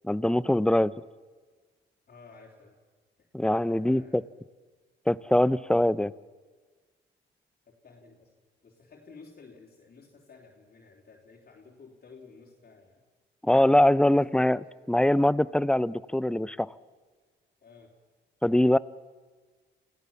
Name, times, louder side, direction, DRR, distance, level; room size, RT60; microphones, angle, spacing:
voice 1, 0.0-0.9 3.3-4.2 5.1-6.1 13.4-16.7 18.4-18.8, left 1 dB, 5° left, 18 dB, 0.6 m, -23 dB
voice 2, 2.1-2.8 3.2-3.3 3.6-4.2 7.7-8.3 8.6-13.1 13.9-14.6 17.6-17.9, left 4 dB, 50° left, -2 dB, 3.5 m, -53 dB
28.0 x 16.5 x 7.3 m, 1.4 s
cardioid pair, 90°, 20 cm